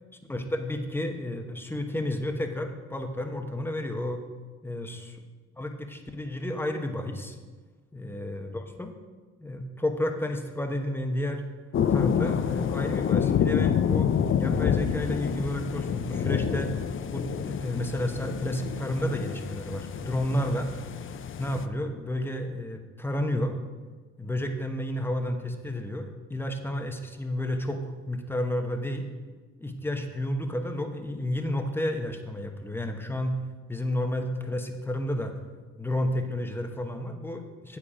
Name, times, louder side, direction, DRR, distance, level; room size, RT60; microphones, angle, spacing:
voice 1, 0.3-4.2 4.6-5.1 5.6-7.4 7.9-8.9 9.4-11.4 11.9-16.7 17.1-20.7 21.4-23.6 24.2-29.1 29.6-33.4 33.7-35.3 35.8-37.8, left 1 dB, 5° left, 5 dB, 1.0 m, -31 dB
sound 1, 11.7-21.7, left 8 dB, 45° left, 0.5 m, -28 dB
8.3 x 7.3 x 5.0 m, 1.4 s
cardioid pair, 90°, 30 cm